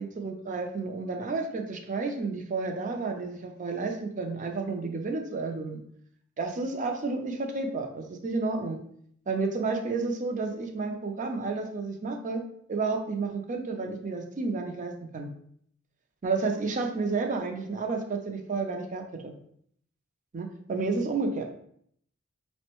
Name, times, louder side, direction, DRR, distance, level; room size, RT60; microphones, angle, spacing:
voice 1, 0.0-5.8 6.4-8.8 9.3-12.4 12.7-15.3 16.2-19.3 20.3-21.5, right 3 dB, 40° right, 4 dB, 0.5 m, -31 dB
5.1 x 2.1 x 2.9 m, 0.65 s
head